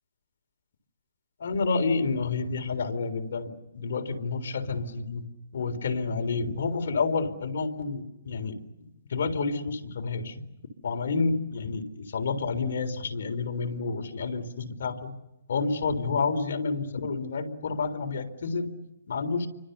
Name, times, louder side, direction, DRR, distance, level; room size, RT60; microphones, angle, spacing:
voice 1, 1.4-5.2 5.5-8.6 9.1-10.4 10.8-15.1 15.5-18.7 19.1-19.5, left 4 dB, 65° left, 5 dB, 3.8 m, -29 dB
30.0 x 25.0 x 6.8 m, 0.93 s
hypercardioid pair, 165°, 0 cm